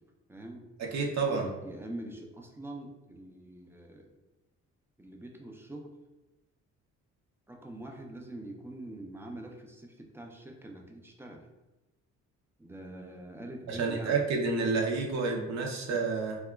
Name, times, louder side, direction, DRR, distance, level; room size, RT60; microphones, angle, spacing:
voice 1, 0.3-0.7 1.3-4.1 5.0-5.9 7.5-11.5 12.6-14.2, right 1 dB, 10° right, 1 dB, 0.3 m, -44 dB
voice 2, 0.9-1.5 13.7-16.4, right 4 dB, 60° right, 0 dB, 0.6 m, -29 dB
2.8 x 2.2 x 2.2 m, 1.1 s
cardioid pair, 90°, 30 cm